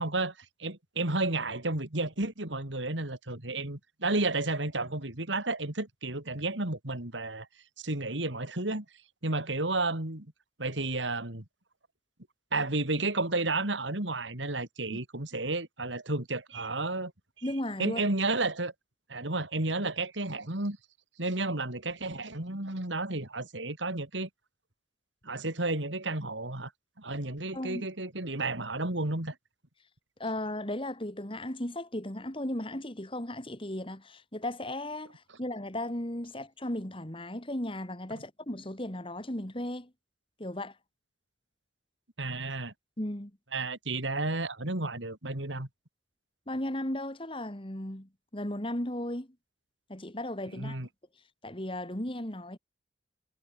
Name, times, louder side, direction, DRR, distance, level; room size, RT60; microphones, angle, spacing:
voice 1, 0.0-7.5 7.8-8.9 9.2-10.3 10.6-11.4 12.5-17.1 17.8-18.7 19.1-20.8 21.2-24.3 25.2-26.7 27.0-29.4 42.2-42.7 43.5-45.7 50.5-50.9, right 2 dB, 80° right, 3.6 m, -32 dB
voice 2, 17.4-18.0 27.5-27.9 30.2-39.9 40.4-40.8 43.0-43.3 46.5-49.3 49.9-50.8 51.4-52.6, left 1 dB, 30° left, 2.6 m, -36 dB
head